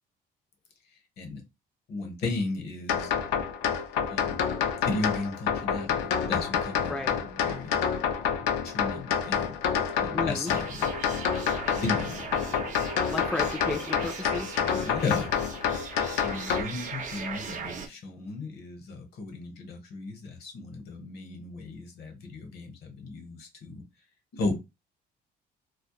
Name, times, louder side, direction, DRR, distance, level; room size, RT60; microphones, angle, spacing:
voice 1, 1.9-3.1 4.1-4.4 4.8-7.8 8.6-9.6 10.0-10.9 11.7-12.4 14.6-15.3 16.2-23.8 24.3-24.6, left 3 dB, 70° left, 0.9 m, -35 dB
sound 1, 2.9-16.6, left 7 dB, 90° left, 0.5 m, -28 dB
voice 2, 10.1-10.5 13.1-14.5, left 2 dB, 5° left, 0.3 m, -33 dB
sound 2, 10.4-17.9, right 6 dB, 50° right, 0.5 m, -39 dB
2.2 x 2.1 x 2.9 m
cardioid pair, 110°, 17 cm